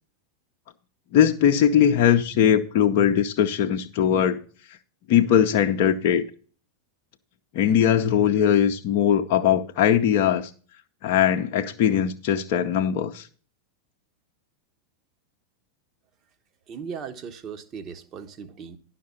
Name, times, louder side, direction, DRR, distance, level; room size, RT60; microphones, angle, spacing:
voice 1, 1.1-4.4 5.1-6.2 7.5-10.5 11.0-13.3, left 9 dB, 45° left, 0.7 m, -20 dB
voice 2, 16.7-18.8, right 6 dB, 30° right, 1.0 m, -37 dB
11.0 x 5.9 x 5.4 m
figure-of-eight pair, 90°, 0 cm